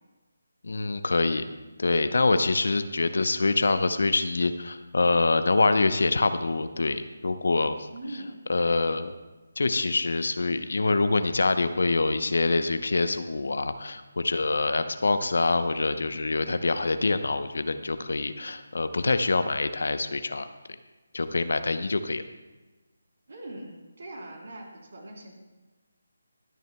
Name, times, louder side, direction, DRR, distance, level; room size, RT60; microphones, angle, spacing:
voice 1, 0.6-1.5 1.8-7.8 8.5-9.1 9.6-20.5 21.1-22.2, left 3 dB, 65° left, 10 dB, 0.7 m, -25 dB
voice 2, 7.9-8.3 23.3-25.4, right 1 dB, 60° right, 1 dB, 3.3 m, -41 dB
24.0 x 9.2 x 2.2 m, 1.2 s
figure-of-eight pair, 150°, 0 cm